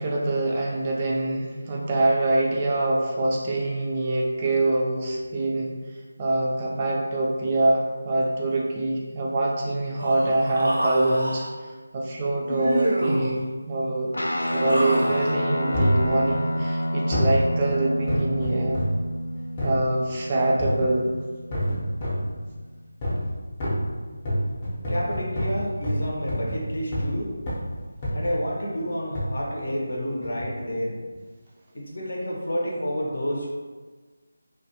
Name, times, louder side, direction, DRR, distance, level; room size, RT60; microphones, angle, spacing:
voice 1, 0.0-5.7 6.2-11.4 11.9-14.2 14.5-18.8 19.6-21.1, right 2 dB, 25° right, -2 dB, 0.3 m, -24 dB
Human voice, 10.0-11.5 12.5-13.3 14.2-15.4, right 1 dB, 85° right, 0.6 m, -28 dB
Guitar, 14.1-22.9, equal, 90° left, 0.3 m, -29 dB
sound 1, 15.7-16.1 17.1-17.4 18.1-19.0 19.6-19.8 20.6-20.9 21.5-22.3 23.0-23.3 23.6-27.2 27.5-27.7 28.0-28.4 29.1-29.4 30.2-30.5 31.1-31.2, equal, 25° left, 0.6 m, -27 dB
voice 2, 24.9-27.3 28.1-31.0 31.7-33.5, equal, 70° left, -3 dB, 0.7 m, -29 dB
2.3 x 2.2 x 2.7 m, 1.3 s
figure-of-eight pair, 165°, 0 cm